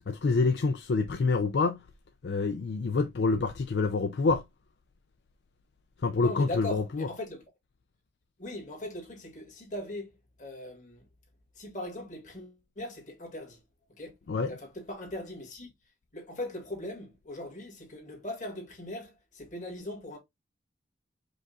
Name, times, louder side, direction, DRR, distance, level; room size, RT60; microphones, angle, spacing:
voice 1, 0.1-1.8 2.2-4.4 6.0-7.1 14.3-14.5, left 4 dB, 65° left, 0.4 m, -27 dB
voice 2, 6.2-7.4 8.4-10.1 10.4-11.0 11.6-13.6 14.0-14.1 14.5-15.7 16.1-20.2, left 1 dB, 40° left, 1.8 m, -39 dB
5.1 x 2.4 x 3.8 m
head